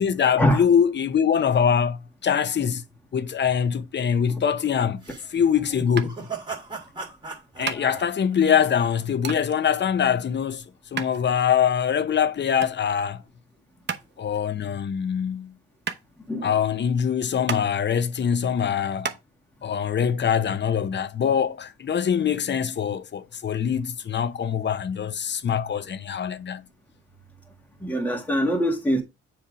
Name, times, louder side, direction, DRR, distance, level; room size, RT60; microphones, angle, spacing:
voice 1, 0.0-2.8 3.1-5.0 5.3-6.2 7.6-10.6 10.9-13.2 14.2-15.5 16.4-19.1 19.6-26.6, left 8 dB, 35° left, 0.6 m, -23 dB
sound 1, 5.0-9.1, right 4 dB, 15° right, 2.5 m, -38 dB
sound 2, 6.0-19.2, right 6 dB, 35° right, 0.9 m, -37 dB
voice 2, 27.8-29.0, equal, 5° left, 1.7 m, -23 dB
7.3 x 3.4 x 5.0 m
cardioid pair, 90°, 30 cm